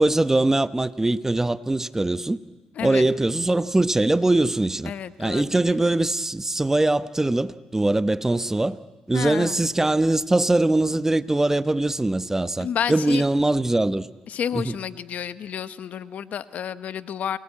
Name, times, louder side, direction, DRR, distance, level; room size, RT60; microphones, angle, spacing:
voice 1, 0.0-2.4 2.8-4.9 5.2-8.8 9.1-14.1 14.5-14.7, right 2 dB, 15° right, 0.9 m, -22 dB
voice 2, 2.7-3.1 4.8-5.8 9.1-9.6 12.6-13.3 14.3-17.4, left 8 dB, 65° left, 1.0 m, -30 dB
28.5 x 19.5 x 8.7 m
supercardioid pair, 60°, 3 cm